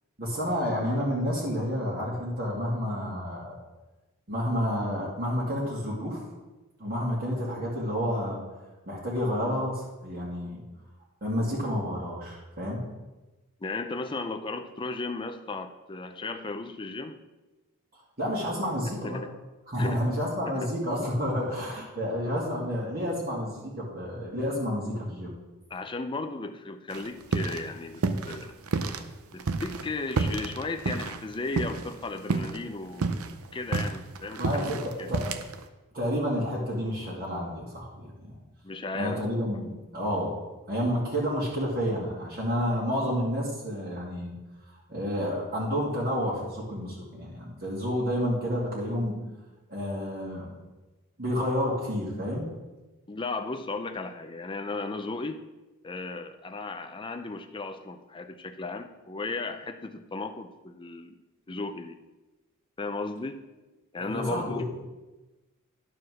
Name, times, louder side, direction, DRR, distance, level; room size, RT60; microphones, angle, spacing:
voice 1, 0.2-3.6 4.3-6.2 6.8-8.4 8.9-10.6 11.2-12.8 18.2-19.2 19.7-25.3 34.4-35.3 35.9-38.4 38.9-40.3 40.7-44.3 44.9-49.1 49.7-50.6 51.2-52.5 64.0-64.7, equal, 45° right, -6 dB, 2.2 m, -30 dB
voice 2, 13.6-17.2 19.0-19.3 19.8-20.0 20.6-20.7 25.7-28.5 29.3-33.2 33.5-34.7 35.0-35.1 38.6-39.2 53.1-55.4 55.8-61.2 61.5-62.0 62.8-63.4 63.9-64.6, left 3 dB, 20° left, 7 dB, 0.5 m, -35 dB
sound 1, 26.9-27.7 27.9-29.0 29.4-32.0 32.3-32.6 32.9-35.6, right 3 dB, 65° right, 0.7 m, -29 dB
11.0 x 4.8 x 6.2 m, 1.1 s
head